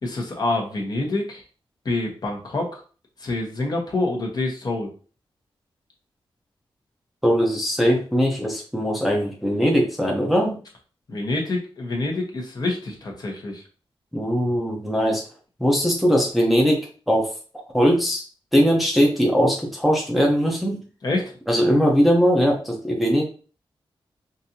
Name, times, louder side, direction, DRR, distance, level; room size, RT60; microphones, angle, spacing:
voice 1, 0.0-1.4 1.8-2.8 3.2-4.9 11.1-13.6 21.0-21.3, left 2 dB, 45° left, 0 dB, 1.1 m, -26 dB
voice 2, 7.2-10.6 14.1-15.2 15.6-17.3 17.7-18.2 18.5-20.8 21.5-23.2, equal, ahead, -1 dB, 0.7 m, -20 dB
5.2 x 2.6 x 2.8 m, 0.38 s
wide cardioid pair, 170°, 9 cm